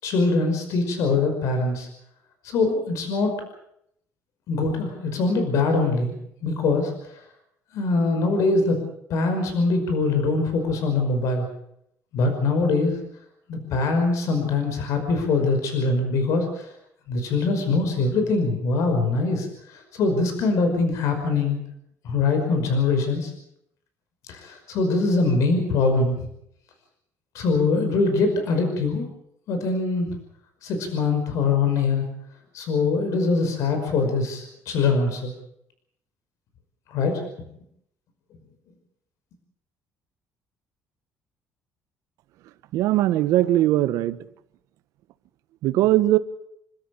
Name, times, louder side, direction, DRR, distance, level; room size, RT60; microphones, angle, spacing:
voice 1, 0.0-1.9 2.4-3.3 4.5-6.1 6.4-7.2 7.7-8.8 9.1-11.5 12.1-13.0 13.5-16.7 17.1-21.6 22.0-23.3 24.3-26.2 27.3-29.1 29.5-30.2 30.6-32.1 32.5-35.3 36.9-37.2, left 3 dB, 65° left, 6 dB, 5.5 m, -23 dB
voice 2, 42.7-44.2 45.6-46.2, right 14 dB, 75° right, 12 dB, 1.4 m, -20 dB
29.0 x 13.0 x 8.6 m, 0.74 s
cardioid pair, 145°, 6 cm